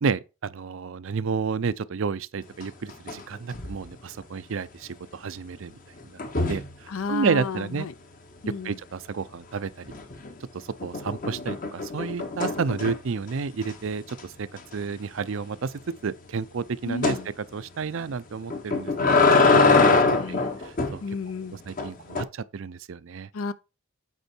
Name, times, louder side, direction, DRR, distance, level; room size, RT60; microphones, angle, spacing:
voice 1, 0.0-5.7 6.0-6.2 6.5-7.9 8.6-9.9 10.5-14.5 14.7-15.7 16.0-17.2 17.5-20.0 20.3-20.4 20.6-21.0 21.7-23.3, right 5 dB, 60° right, 0.5 m, -31 dB
sound 1, 2.6-3.2 3.5-3.9 6.2-6.7 9.9-10.3 10.8-13.2 13.6-13.7 14.1-14.2 14.6-14.7 17.0-17.2 18.5-21.0 21.8-22.2, left 3 dB, 40° left, 0.9 m, -23 dB
voice 2, 6.9-7.9 8.4-8.8 16.9-17.3 19.7-20.6 21.0-21.6 23.3-23.5, left 4 dB, 70° left, 0.5 m, -33 dB
8.2 x 4.5 x 4.3 m
head